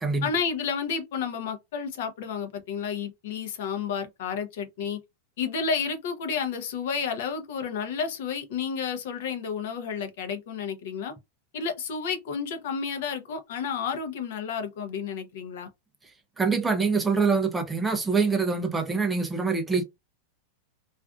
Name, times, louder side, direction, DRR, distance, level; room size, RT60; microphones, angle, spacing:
voice 1, 0.2-5.0 5.4-11.1 11.5-15.7, left 6 dB, 60° left, 0.6 m, -31 dB
voice 2, 16.4-19.8, right 4 dB, 5° right, 0.4 m, -25 dB
2.4 x 2.4 x 2.3 m
supercardioid pair, 175°, 0 cm